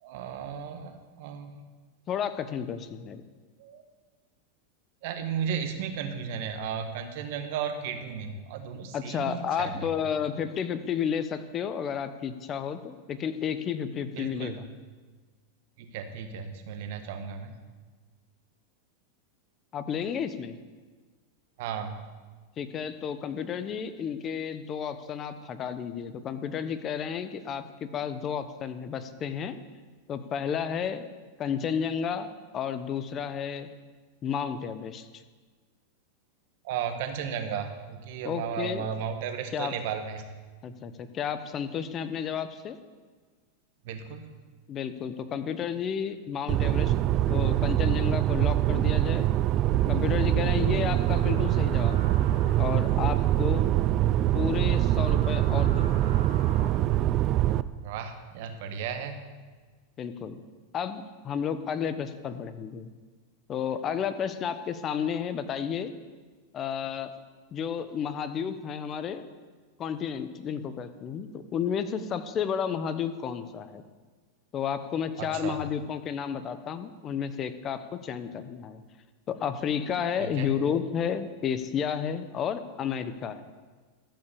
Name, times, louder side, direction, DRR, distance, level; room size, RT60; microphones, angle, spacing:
voice 1, 0.0-1.5 3.6-3.8 5.0-9.9 14.1-14.6 15.8-17.5 21.6-22.1 36.6-40.3 43.8-44.3 57.8-59.2 75.2-75.6 80.2-80.5, right 7 dB, 65° right, 7 dB, 1.4 m, -34 dB
voice 2, 2.1-3.2 8.9-14.6 19.7-20.6 22.6-27.6 27.9-29.6 30.1-31.1 31.4-33.7 34.2-35.2 38.2-38.9 39.5-39.7 40.6-42.8 44.7-46.9 47.3-49.3 49.9-52.0 52.6-53.7 54.3-56.3 60.0-60.4 60.7-62.9 63.5-65.9 66.5-67.1 67.5-69.3 69.8-73.8 74.5-78.8 79.3-83.4, left 7 dB, 35° left, 11 dB, 0.9 m, -32 dB
sound 1, 46.5-57.6, right 13 dB, 40° right, 0.4 m, -24 dB
sound 2, 49.5-56.7, right 4 dB, 85° right, 2.8 m, -46 dB
14.0 x 5.7 x 7.0 m, 1.4 s
hypercardioid pair, 115°, 0 cm